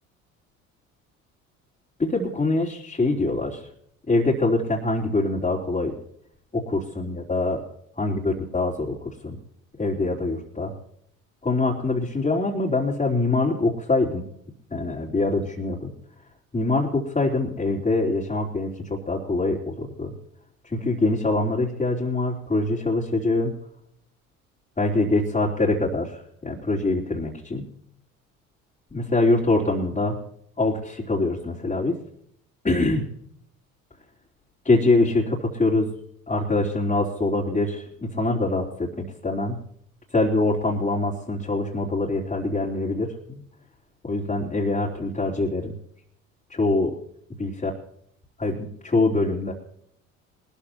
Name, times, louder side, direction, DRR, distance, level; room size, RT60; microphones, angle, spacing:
voice 1, 2.0-3.7 4.1-5.9 6.5-7.6 8.0-9.4 9.8-10.7 11.4-14.2 14.7-15.9 16.5-20.1 20.6-23.5 24.8-27.6 28.9-30.2 30.6-32.0 32.6-33.1 34.6-35.9 36.3-39.6 40.1-43.4 44.0-45.7 46.5-46.9 47.4-47.7 48.4-49.5, left 2 dB, 20° left, -4 dB, 3.7 m, -24 dB
23.5 x 13.5 x 2.9 m, 0.69 s
figure-of-eight pair, 55°, 41 cm